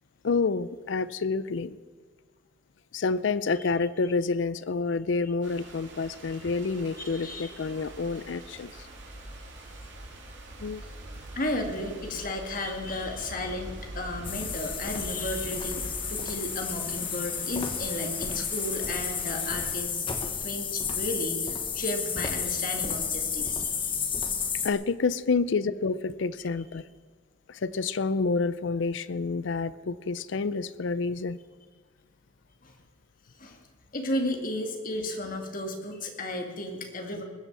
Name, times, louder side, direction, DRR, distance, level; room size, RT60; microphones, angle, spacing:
voice 1, 0.2-1.8 2.9-8.7 10.6-10.8 24.6-26.8 27.5-31.4, left 4 dB, 65° left, 17 dB, 0.5 m, -28 dB
sound 1, 5.4-19.8, right 1 dB, 60° right, 3.1 m, -44 dB
voice 2, 7.0-7.5 11.4-24.0 32.6-32.7 33.4-33.6 33.9-37.2, left 1 dB, 45° left, 3 dB, 2.2 m, -34 dB
sound 2, 14.2-24.7, left 6 dB, 25° left, 1.3 m, -32 dB
20.5 x 8.1 x 7.4 m, 1.5 s
head